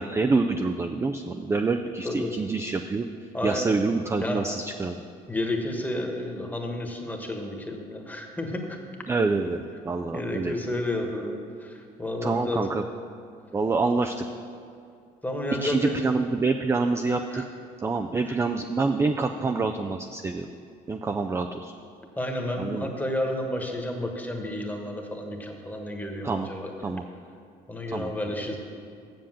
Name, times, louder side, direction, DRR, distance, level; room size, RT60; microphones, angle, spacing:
voice 1, 0.0-3.1 3.4-5.0 9.1-10.5 12.2-12.8 13.5-14.1 15.6-17.4 17.8-20.5 20.9-21.7 22.6-22.9 26.2-26.5 26.8-27.0 27.9-28.1, right 3 dB, 15° right, 6 dB, 0.4 m, -26 dB
voice 2, 3.3-3.7 4.2-4.4 5.3-8.8 10.1-11.3 11.6-12.6 15.2-16.0 17.3-17.4 18.3-18.4 22.2-26.7 27.7-28.6, left 1 dB, 10° left, 2 dB, 1.3 m, -31 dB
7.7 x 7.0 x 7.5 m, 2.4 s
cardioid pair, 110°, 17 cm